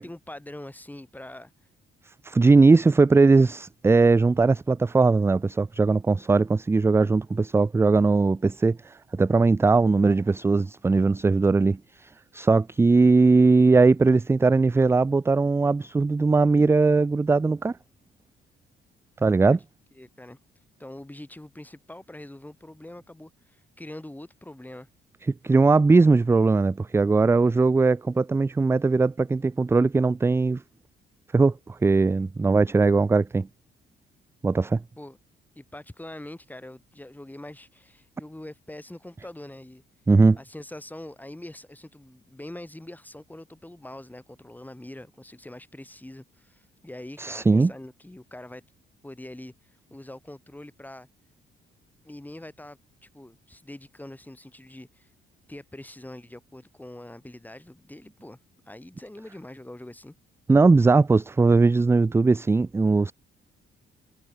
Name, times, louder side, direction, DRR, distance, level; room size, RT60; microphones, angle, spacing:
voice 1, 0.0-1.5 19.4-19.6 19.9-20.4 20.8-24.9 35.0-35.2 35.5-39.8 40.4-48.6 49.0-51.1 52.0-55.1 55.5-58.4 58.7-60.1, left 1 dB, 10° left, 6.6 m, -43 dB
voice 2, 2.2-17.8 19.2-19.6 25.4-30.6 31.3-33.5 34.4-34.8 40.1-40.4 47.2-47.7 60.5-63.1, right 3 dB, 15° right, 0.3 m, -20 dB
cardioid pair, 90°, 20 cm